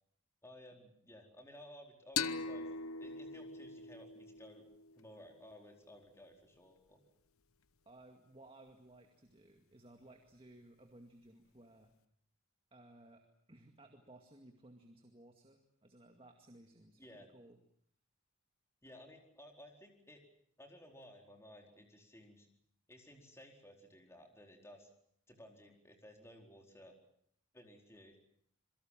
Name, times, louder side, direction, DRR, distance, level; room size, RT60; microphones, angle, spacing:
voice 1, 0.4-2.7 3.0-4.6 4.9-7.0 17.0-17.3 18.8-20.2 20.6-22.5 22.9-24.9 25.3-26.9 27.5-28.2, left 1 dB, 15° left, 3 dB, 4.5 m, -57 dB
sound 1, 2.2-5.5, left 5 dB, 85° left, 1.1 m, -41 dB
voice 2, 7.9-11.9 12.7-13.2 13.5-17.6, right 1 dB, 25° right, 4 dB, 2.1 m, -59 dB
27.5 x 23.0 x 7.5 m, 0.65 s
head